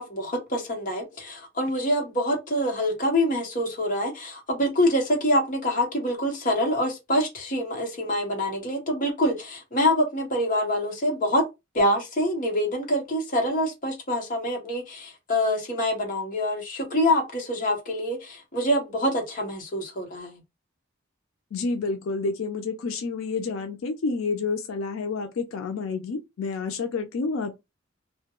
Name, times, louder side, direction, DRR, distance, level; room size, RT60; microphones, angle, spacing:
voice 1, 0.0-11.4 11.7-20.4, left 1 dB, 40° left, 0.8 m, -25 dB
voice 2, 21.5-27.6, left 4 dB, 85° left, 0.4 m, -29 dB
2.2 x 2.1 x 2.9 m
head